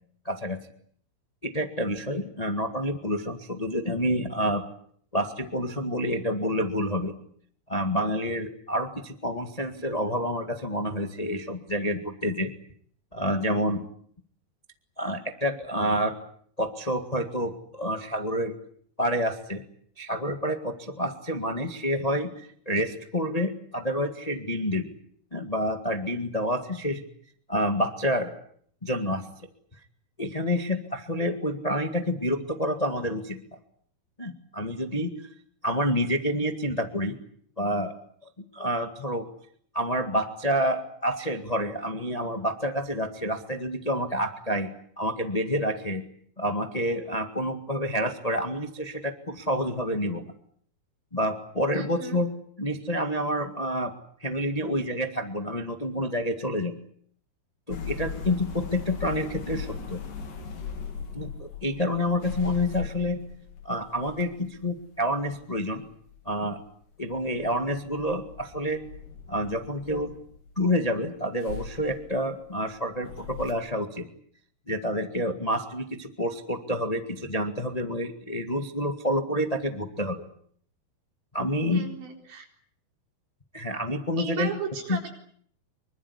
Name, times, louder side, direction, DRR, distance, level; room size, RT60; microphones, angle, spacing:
voice 1, 0.2-0.6 1.4-4.6 5.1-7.1 7.7-12.5 13.1-13.8 15.0-16.1 16.6-18.5 19.0-19.6 20.0-24.9 25.3-27.0 27.5-28.3 28.8-29.3 30.2-33.4 34.2-35.1 35.6-37.2 37.6-37.9 38.5-39.3 39.7-44.7 45.0-46.0 46.4-50.2 51.1-52.3 52.6-53.9 54.2-56.7 57.7-60.0 61.1-63.2 63.6-65.8 66.2-66.6 67.0-68.8 69.3-70.1 70.5-74.1 74.7-80.2 81.3-81.9 83.5-84.6 84.9-85.0, equal, 35° left, 6 dB, 0.6 m, -28 dB
voice 2, 51.7-52.2 81.7-82.5 84.2-85.1, right 6 dB, 65° right, 3 dB, 5.9 m, -36 dB
sound 1, 57.7-66.8 67.1-70.9 71.4-73.5, left 6 dB, 60° left, 4.5 m, -39 dB
25.5 x 24.0 x 8.3 m, 0.63 s
omnidirectional pair, 4.5 m